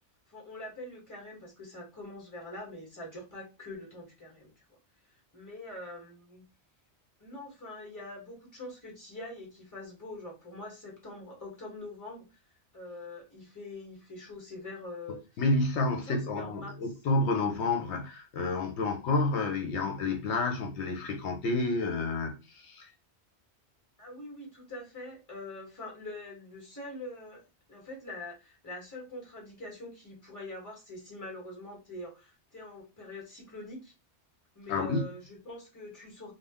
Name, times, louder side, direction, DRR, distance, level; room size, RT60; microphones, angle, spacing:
voice 1, 0.3-4.6 5.1-6.4 7.2-12.4 12.7-15.4 15.9-16.7 24.0-27.4 27.7-33.9 34.5-36.3, left 2 dB, 15° left, 1.2 m, -44 dB
voice 2, 15.4-22.9 34.7-35.0, left 2 dB, 80° left, 0.9 m, -29 dB
2.4 x 2.1 x 3.4 m
omnidirectional pair, 1.1 m